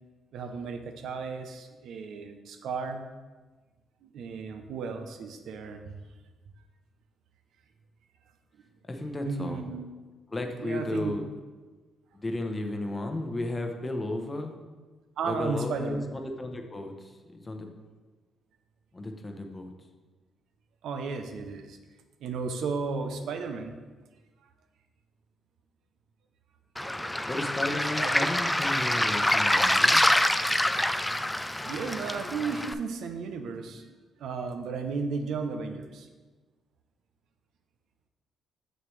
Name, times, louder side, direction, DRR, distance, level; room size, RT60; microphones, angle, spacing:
voice 1, 0.3-3.0 4.0-6.0 9.3-9.9 10.6-11.1 15.2-16.0 20.8-21.8 22.2-23.8 26.8-27.3 28.0-28.3 31.6-36.1, right 4 dB, 75° right, 6 dB, 0.6 m, -34 dB
voice 2, 8.9-9.6 10.3-11.2 12.1-14.5 15.3-17.7 18.9-19.7 27.2-30.0, left 1 dB, 25° left, 4 dB, 0.8 m, -34 dB
Waves surf, 26.8-32.7, left 1 dB, 10° left, 0.3 m, -26 dB
6.7 x 6.3 x 3.2 m, 1.3 s
cardioid pair, 90°, 0 cm